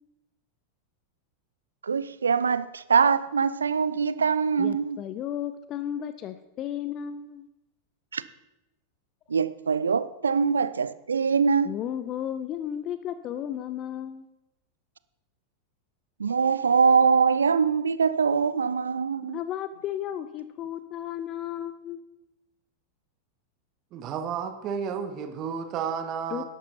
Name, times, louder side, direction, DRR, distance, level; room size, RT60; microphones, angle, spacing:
voice 1, 1.8-5.0 8.1-8.2 9.3-11.7 16.2-19.4, right 5 dB, 70° right, 0.4 m, -23 dB
voice 2, 4.6-7.5 11.6-14.3 19.2-22.0 26.3-26.4, left 10 dB, 35° left, 0.5 m, -34 dB
voice 3, 23.9-26.4, right 7 dB, 35° right, 1.1 m, -32 dB
13.5 x 11.0 x 2.8 m
figure-of-eight pair, 90°, 0 cm